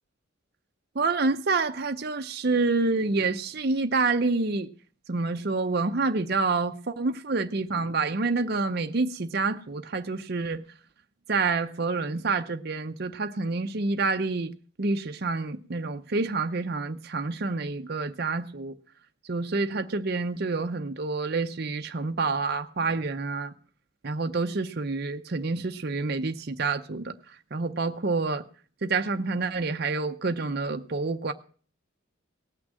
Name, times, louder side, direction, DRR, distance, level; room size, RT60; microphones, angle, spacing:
voice 1, 0.9-4.7 5.1-10.6 11.3-14.5 14.8-18.7 19.3-23.5 24.0-28.4 28.8-31.3, right 3 dB, 50° right, 0.6 m, -28 dB
18.0 x 6.2 x 7.4 m
head